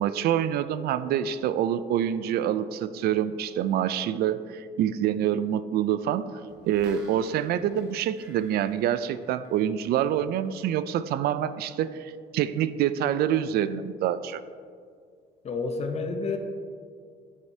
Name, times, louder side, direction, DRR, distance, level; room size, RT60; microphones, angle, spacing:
voice 1, 0.0-6.2 6.6-14.4, right 10 dB, 65° right, 14 dB, 0.4 m, -26 dB
sound 1, 6.5-10.0 10.3-10.4, right 2 dB, 85° right, 1.5 m, -53 dB
voice 2, 15.4-16.4, left 4 dB, 40° left, 6 dB, 0.8 m, -29 dB
9.3 x 7.4 x 2.8 m, 2.1 s
cardioid pair, 110°, 17 cm